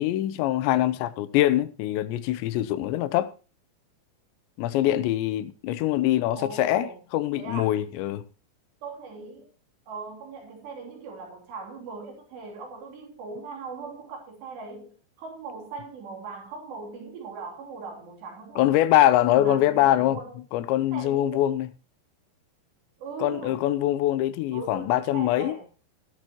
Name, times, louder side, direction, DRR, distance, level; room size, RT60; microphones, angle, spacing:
voice 1, 0.0-3.3 4.6-8.2 18.6-20.2 20.5-21.7 23.2-25.6, left 13 dB, 90° left, 3.1 m, -23 dB
voice 2, 6.3-7.0 7.4-7.8 8.8-9.5 9.9-18.7 19.3-20.4 20.9-21.4 23.0-23.7 24.5-25.6, right 4 dB, 75° right, 5.2 m, -39 dB
16.5 x 12.0 x 3.0 m
omnidirectional pair, 5.0 m